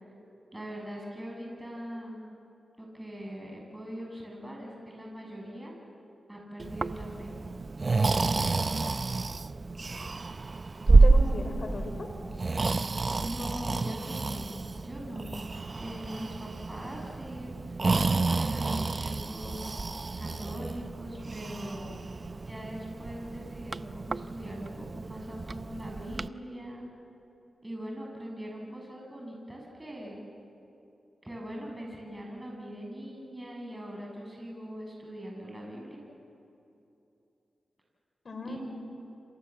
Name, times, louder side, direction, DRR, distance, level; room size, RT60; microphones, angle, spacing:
voice 1, 0.5-2.2 2.8-5.7 6.3-7.3 13.2-15.4 15.7-19.8 20.2-21.9 22.4-26.9 27.6-30.2 31.2-36.0 38.4-38.6, equal, 15° right, -1 dB, 7.7 m, -41 dB
Breathing, 6.6-26.3, right 3 dB, 45° right, 0.6 m, -29 dB
voice 2, 10.9-12.1 38.2-38.7, left 2 dB, 55° left, 6 dB, 4.7 m, -36 dB
28.5 x 26.5 x 7.5 m, 2.8 s
cardioid pair, 50°, 0 cm